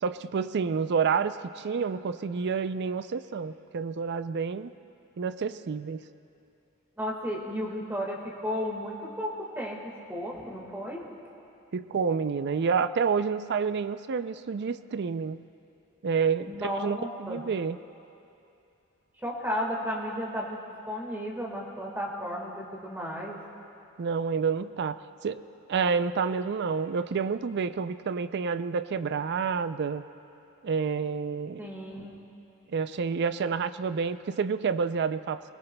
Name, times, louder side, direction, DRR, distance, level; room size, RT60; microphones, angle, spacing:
voice 1, 0.0-4.7 5.2-6.0 11.7-15.5 16.0-17.8 24.0-25.4 25.7-30.0 30.6-31.6 32.7-35.5, right 5 dB, 50° right, 13 dB, 0.4 m, -29 dB
voice 2, 7.0-9.8 10.1-11.5 16.5-17.4 19.2-20.6 20.9-23.4 31.6-32.1, equal, 10° right, -2 dB, 1.7 m, -34 dB
23.0 x 20.5 x 2.2 m, 2.7 s
head